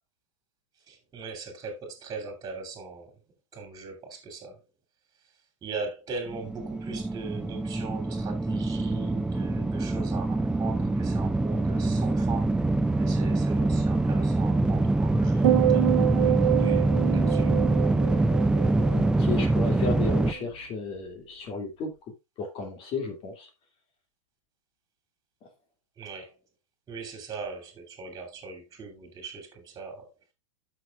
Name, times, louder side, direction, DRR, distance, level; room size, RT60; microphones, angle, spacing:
voice 1, 0.9-3.2 3.5-4.6 5.6-12.5 13.0-16.0 16.2-17.6 26.0-26.3 26.9-30.1, right 4 dB, 20° right, 2.9 m, -40 dB
sound 1, 6.3-20.3, right 2 dB, 5° right, 0.4 m, -25 dB
sound 2, 15.4-19.8 20.1-20.5, right 17 dB, 70° right, 0.8 m, -27 dB
voice 2, 18.9-21.9 22.4-23.5, left 4 dB, 35° left, 2.4 m, -33 dB
12.5 x 6.4 x 2.4 m
supercardioid pair, 135°, 17 cm